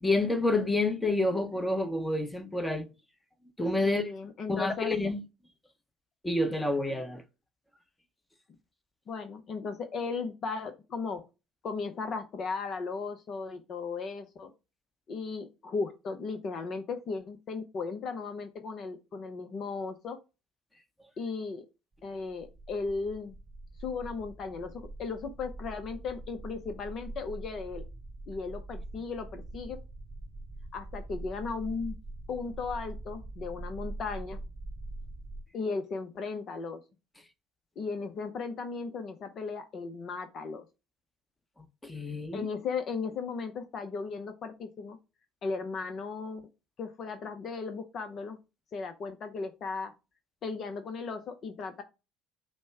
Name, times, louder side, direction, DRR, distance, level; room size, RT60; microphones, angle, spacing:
voice 1, 0.0-2.9 3.6-4.1 4.5-5.2 6.2-7.2 41.8-42.5, left 2 dB, 10° left, 0.9 m, -28 dB
voice 2, 3.8-4.9 9.1-11.2 11.6-14.5 15.1-20.2 21.2-21.6 22.0-23.4 23.8-27.8 28.3-29.8 30.7-32.0 32.3-34.4 35.5-36.8 37.8-40.6 42.3-45.0 45.4-46.5 46.8-48.4 48.7-49.9 50.4-51.8, left 4 dB, 50° left, 0.6 m, -36 dB
sound 1, 22.1-35.4, right 2 dB, 25° right, 0.6 m, -43 dB
5.2 x 2.1 x 4.6 m
hypercardioid pair, 60°, 0 cm